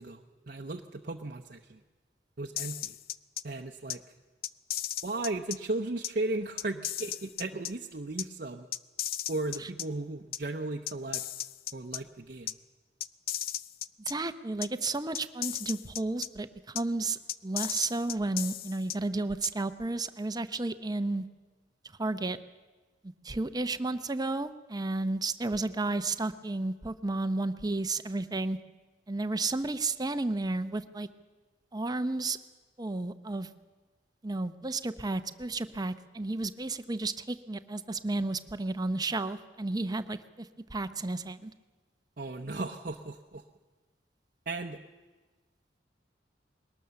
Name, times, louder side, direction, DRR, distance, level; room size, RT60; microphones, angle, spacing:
voice 1, 0.0-1.8 2.4-3.0 3.4-4.0 5.0-8.7 9.3-11.2 11.7-12.5 42.2-43.4 44.5-44.8, right 2 dB, 55° right, 3 dB, 0.8 m, -36 dB
sound 1, 2.6-3.4 3.9-4.0 4.4-5.6 6.0-6.1 6.6-7.7 8.2-8.3 8.7-9.8 10.3-10.4 10.9-12.0 12.5-12.6 13.0-14.1 14.6-14.7 15.1-16.3 16.8-16.9 17.3-19.0 19.4-19.5, left 12 dB, 55° left, 0.5 m, -35 dB
voice 2, 14.1-21.2 22.0-22.4 23.2-28.6 29.1-31.1 31.7-32.4 32.8-33.5 34.2-41.5, right 2 dB, 20° right, 11 dB, 0.7 m, -32 dB
21.0 x 18.5 x 7.0 m, 1.3 s
head